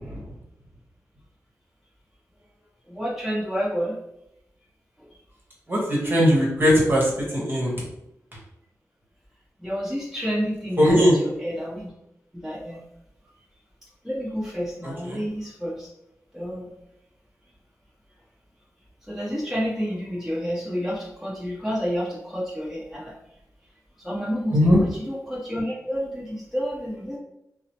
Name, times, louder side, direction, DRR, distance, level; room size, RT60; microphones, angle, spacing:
voice 1, 2.9-4.0 9.6-11.9 12.3-12.8 14.0-15.9 16.3-16.7 19.1-23.1 24.0-27.2, equal, 5° right, -7 dB, 1.0 m, -29 dB
voice 2, 5.7-7.7 10.8-11.1 15.1-15.2 24.5-24.8, equal, 35° right, -4 dB, 1.1 m, -19 dB
2.9 x 2.0 x 2.9 m, 0.83 s
cardioid pair, 45°, 6 cm